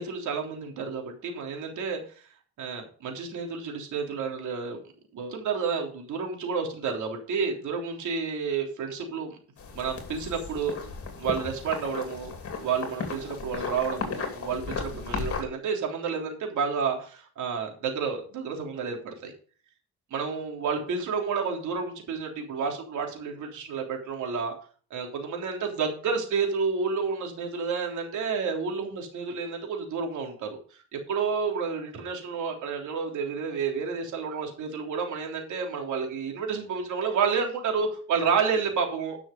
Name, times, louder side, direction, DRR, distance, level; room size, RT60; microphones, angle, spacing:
voice 1, 0.0-2.0 2.6-4.8 5.1-9.4 9.7-10.8 11.2-12.3 12.6-19.3 20.1-24.5 24.9-30.8 31.1-39.2, right 5 dB, 75° right, 1 dB, 3.4 m, -30 dB
sound 1, 9.6-15.4, left 5 dB, 50° left, 2.8 m, -35 dB
11.0 x 6.2 x 5.2 m, 0.42 s
cardioid pair, 90°, 30 cm